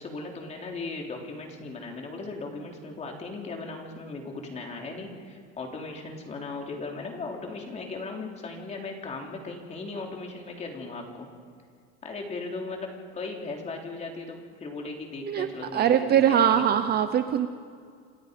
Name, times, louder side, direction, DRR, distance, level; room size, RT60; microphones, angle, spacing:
voice 1, 0.0-11.3 12.0-16.7, left 3 dB, 25° left, 1 dB, 3.5 m, -37 dB
voice 2, 15.7-17.5, right 9 dB, 35° right, 9 dB, 0.8 m, -22 dB
28.5 x 24.5 x 5.2 m, 2.1 s
cardioid pair, 165°, 30 cm